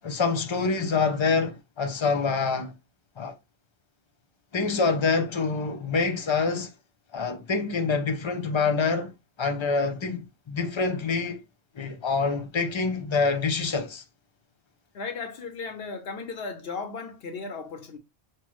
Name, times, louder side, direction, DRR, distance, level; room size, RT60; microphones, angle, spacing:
voice 1, 0.0-2.7 3.2-3.4 4.5-6.7 7.1-9.1 9.4-11.4 11.8-14.0, left 4 dB, 35° left, 0.5 m, -26 dB
voice 2, 14.9-18.0, left 4 dB, 65° left, 0.8 m, -36 dB
5.7 x 2.2 x 3.1 m
omnidirectional pair, 1.2 m